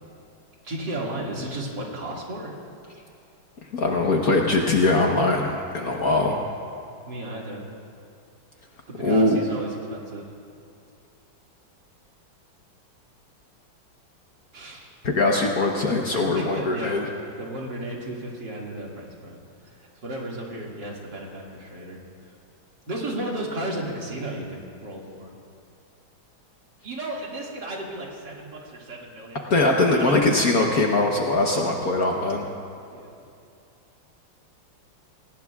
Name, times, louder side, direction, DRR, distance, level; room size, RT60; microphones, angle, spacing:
voice 1, 0.6-2.5 7.1-7.6 8.9-10.3 14.5-14.9 16.1-17.0 17.4-19.4 19.6-22.0 22.9-25.3 26.8-29.5 29.9-30.4 32.9-33.2, right 1 dB, 55° right, -3 dB, 2.8 m, -34 dB
voice 2, 3.7-6.4 9.0-9.4 15.0-17.0 29.5-32.5, left 2 dB, 50° left, 0 dB, 1.3 m, -21 dB
24.0 x 18.5 x 2.4 m, 2.5 s
omnidirectional pair, 2.3 m